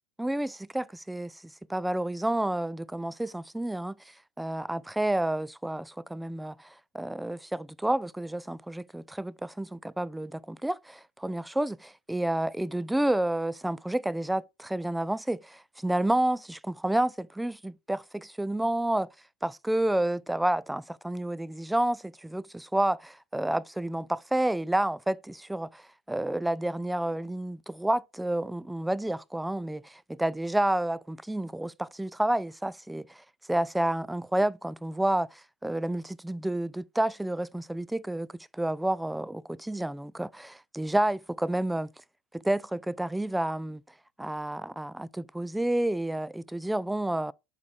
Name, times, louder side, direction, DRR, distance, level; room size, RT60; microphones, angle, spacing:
voice 1, 0.2-4.0 4.4-19.1 19.4-33.2 33.5-41.9 42.3-43.8 44.2-47.3, right 1 dB, 5° right, 0.3 m, -30 dB
12.0 x 4.1 x 2.3 m
hypercardioid pair, 90°, 0 cm